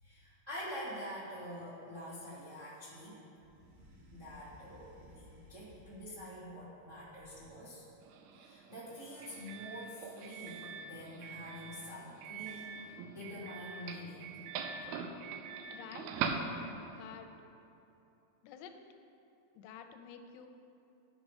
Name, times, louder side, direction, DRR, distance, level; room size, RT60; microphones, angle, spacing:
voice 1, 0.0-3.2 4.1-7.8 8.3-14.4, equal, 35° right, -10 dB, 1.3 m, -46 dB
sound 1, 3.3-6.4 6.9-7.8, equal, 55° right, 2.1 m, -59 dB
Doorbell, 8.0-17.1, right 5 dB, 85° right, 2.2 m, -42 dB
voice 2, 15.7-16.2 16.9-17.3 18.4-18.8 19.6-20.5, left 8 dB, 85° left, 6 dB, 2.8 m, -50 dB
13.0 x 4.8 x 5.3 m, 2.8 s
omnidirectional pair, 4.8 m